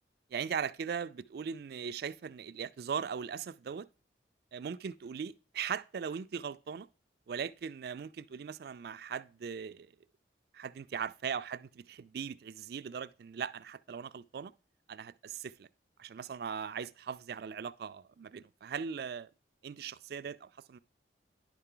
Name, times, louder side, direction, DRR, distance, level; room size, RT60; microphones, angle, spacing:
voice 1, 0.3-3.9 4.5-6.9 7.3-9.9 10.5-14.5 14.9-15.7 16.0-19.3 19.6-20.8, right 7 dB, 55° right, 0.3 m, -39 dB
10.5 x 5.6 x 3.8 m
head